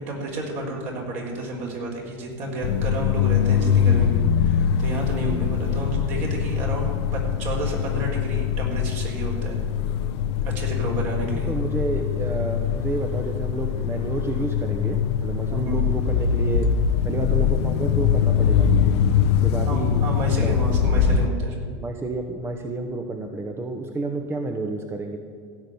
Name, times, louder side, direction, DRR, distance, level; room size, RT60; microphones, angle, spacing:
voice 1, 0.0-9.6 10.4-11.5 15.5-15.9 19.7-21.6, right 2 dB, 50° right, -1 dB, 4.0 m, -31 dB
sound 1, 2.6-21.3, left 8 dB, 65° left, 0.8 m, -23 dB
voice 2, 11.5-16.7 17.0-18.7 19.2-20.1 20.4-20.6 21.8-25.2, right 2 dB, 15° right, 5 dB, 1.0 m, -30 dB
16.0 x 5.3 x 9.3 m, 2.3 s
hypercardioid pair, 90°, 15 cm